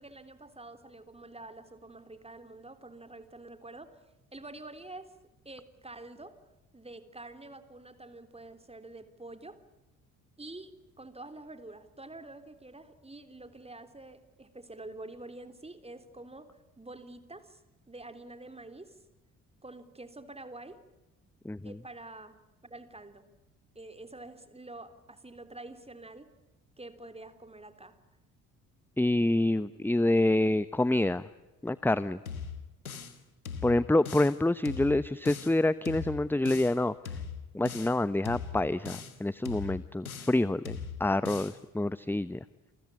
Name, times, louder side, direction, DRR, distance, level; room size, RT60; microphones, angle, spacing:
voice 1, 0.0-4.0 4.3-5.1 5.4-6.3 6.7-9.6 10.4-16.5 16.8-17.6 17.9-18.9 19.6-20.8 21.6-22.4 22.6-23.3 23.7-26.3 26.8-27.9, right 2 dB, 15° right, 9 dB, 3.6 m, -47 dB
voice 2, 21.4-21.8 29.0-31.3 31.6-32.2 33.6-36.9 37.5-42.4, left 1 dB, 5° left, 16 dB, 1.0 m, -27 dB
sound 1, 32.3-33.2 33.5-34.4 34.7-35.6 35.9-36.8 37.1-38.0 38.3-39.2 39.5-40.4 40.7-41.6, left 6 dB, 90° left, 1.6 m, -40 dB
28.5 x 22.0 x 8.5 m, 1.0 s
figure-of-eight pair, 45°, 41 cm